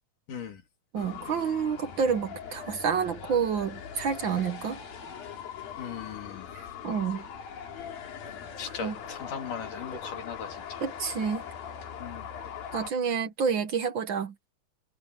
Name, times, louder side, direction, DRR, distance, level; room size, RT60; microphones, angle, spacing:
voice 1, 0.3-0.6 5.8-6.5 8.2-10.8 12.0-12.3, left 6 dB, 65° left, 4.1 m, -39 dB
voice 2, 0.9-4.8 6.8-7.2 8.8-8.9 10.8-11.4 12.7-14.5, right 6 dB, 75° right, 1.1 m, -29 dB
sound 1, 1.0-12.9, left 8 dB, 80° left, 4.5 m, -41 dB
omnidirectional pair, 4.1 m